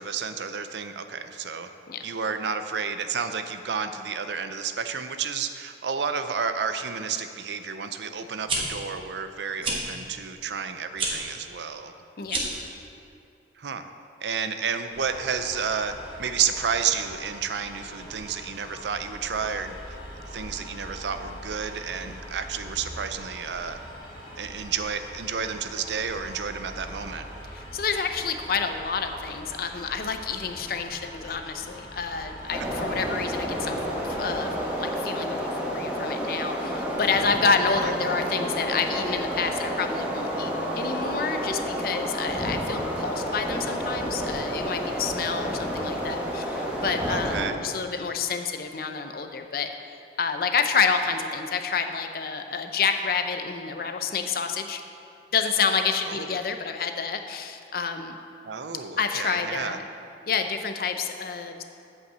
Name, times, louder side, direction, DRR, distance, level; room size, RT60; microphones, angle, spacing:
voice 1, 0.0-1.7 2.0-11.9 13.6-13.9 14.2-15.9 16.2-23.8 24.4-27.2 37.7-37.9 47.1-47.6 56.0-56.4 58.5-59.8, right 6 dB, 80° right, 9 dB, 0.5 m, -31 dB
sound 1, 8.3-8.6 9.6-9.8 10.9-11.1 12.2-12.6, right 3 dB, 30° right, 1.2 m, -28 dB
sound 2, 14.9-34.8, equal, 30° left, 2.2 m, -42 dB
voice 2, 27.5-33.8 34.0-34.5 34.8-49.7 50.2-54.8 55.3-58.2 59.0-59.8 60.3-61.6, left 5 dB, 55° left, 7 dB, 0.6 m, -28 dB
sound 3, 32.5-47.5, equal, 10° right, 1.3 m, -30 dB
8.1 x 5.5 x 7.3 m, 2.6 s
head